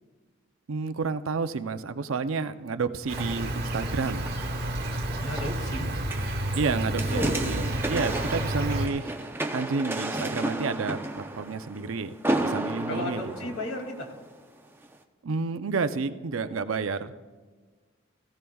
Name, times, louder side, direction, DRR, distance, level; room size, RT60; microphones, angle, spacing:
voice 1, 0.7-4.3 6.5-9.1 9.5-12.1 12.4-13.5 15.2-17.1, right 4 dB, 80° right, 10 dB, 0.6 m, -30 dB
sound 1, 3.0-14.3 14.8-14.9, right 1 dB, 10° right, 0.6 m, -33 dB
Insect, 3.1-8.9, right 1 dB, 50° right, 1.2 m, -30 dB
voice 2, 5.2-5.9 6.7-6.8 7.1-7.5 12.9-14.1, left 1 dB, 70° left, 2 dB, 2.4 m, -34 dB
17.5 x 15.5 x 2.3 m, 1.4 s
head